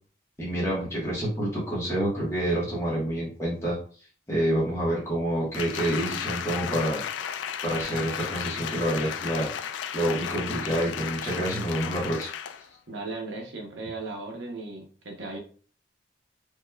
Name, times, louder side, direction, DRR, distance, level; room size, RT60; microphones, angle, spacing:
voice 1, 0.4-3.8 4.3-7.0 7.6-9.5 9.9-12.3, right 1 dB, 15° left, -7 dB, 1.1 m, -28 dB
Applause, 5.5-12.7 13.1-13.2, left 8 dB, 85° left, 0.3 m, -34 dB
voice 2, 12.9-15.4, right 3 dB, 85° right, 1 dB, 0.8 m, -36 dB
3.5 x 3.1 x 2.2 m, 0.41 s
head